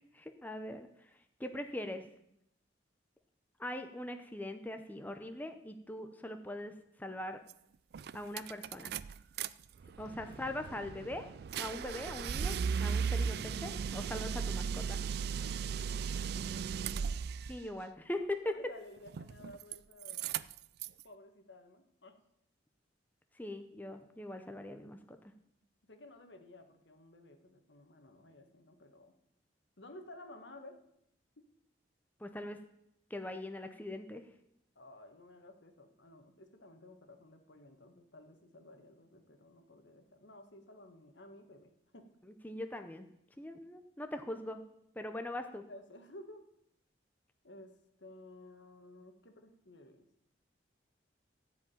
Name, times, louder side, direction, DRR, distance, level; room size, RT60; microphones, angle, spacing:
voice 1, 0.2-0.9 1.4-2.1 3.6-6.7 7.0-7.4 8.1-8.9 10.0-11.3 11.6-15.0 17.5-18.5 23.4-25.2 32.2-32.6 33.1-34.2 42.4-43.1 43.4-44.6 45.0-45.6, left 1 dB, 10° left, 6 dB, 0.7 m, -41 dB
sound 1, 7.5-7.6 7.9-9.5 9.8-17.6 19.1-19.8 20.0-21.0, right 6 dB, 60° right, 0.3 m, -36 dB
voice 2, 16.2-17.2 18.4-20.3 21.0-22.2 25.9-29.1 29.8-30.8 31.4-31.5 34.7-42.1 45.7-46.5 47.4-50.0, left 1 dB, 75° left, 7 dB, 1.5 m, -54 dB
14.0 x 5.0 x 8.9 m, 0.78 s
head